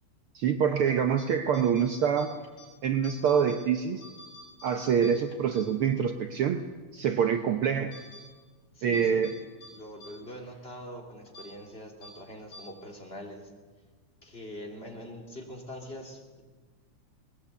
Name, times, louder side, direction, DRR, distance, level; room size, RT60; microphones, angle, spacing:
voice 1, 0.3-2.3 2.8-4.0 4.6-6.6 6.9-8.0 8.8-9.3, right 7 dB, 85° right, 7 dB, 1.2 m, -26 dB
sound 1, 1.1-1.3 1.5-2.7 3.0-3.6 3.9-6.1 6.5-6.6 7.0-7.4 7.9-8.2 8.9-9.4 9.6-9.7 10.0-10.1 10.4-10.6 11.3-11.5 12.0-12.1 12.5-12.6, left 1 dB, 75° left, 6.6 m, -49 dB
voice 2, 8.7-13.5 14.2-16.4, left 1 dB, 20° left, 1 dB, 3.0 m, -43 dB
20.5 x 20.0 x 8.3 m, 1.4 s
omnidirectional pair, 3.6 m